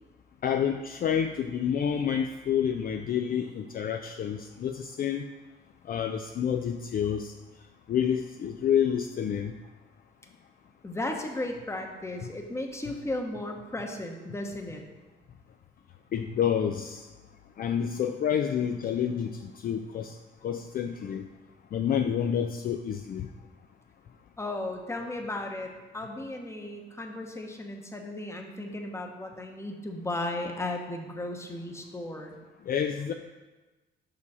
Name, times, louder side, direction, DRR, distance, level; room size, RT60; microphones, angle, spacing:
voice 1, 0.4-5.2 5.9-7.3 7.9-9.5 16.1-17.0 17.6-20.1 20.4-21.3 21.7-23.3 32.7-33.1, left 8 dB, 50° left, 6 dB, 0.4 m, -28 dB
voice 2, 10.8-14.8 24.4-32.3, left 1 dB, 15° left, 3 dB, 0.9 m, -35 dB
5.4 x 5.0 x 4.8 m, 1.2 s
cardioid pair, 90°, 20 cm